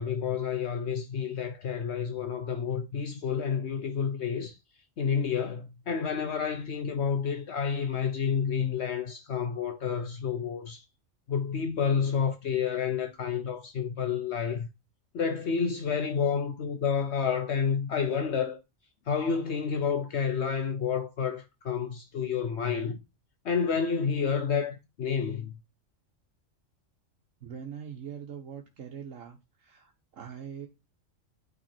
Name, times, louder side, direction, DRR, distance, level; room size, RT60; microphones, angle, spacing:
voice 1, 0.0-4.6 5.0-10.8 11.3-14.7 15.1-18.6 19.1-23.0 23.4-25.5, left 6 dB, 65° left, 1.0 m, -29 dB
voice 2, 27.4-29.4 29.6-30.7, right 8 dB, 85° right, 1.4 m, -42 dB
9.0 x 3.8 x 4.3 m
omnidirectional pair, 1.3 m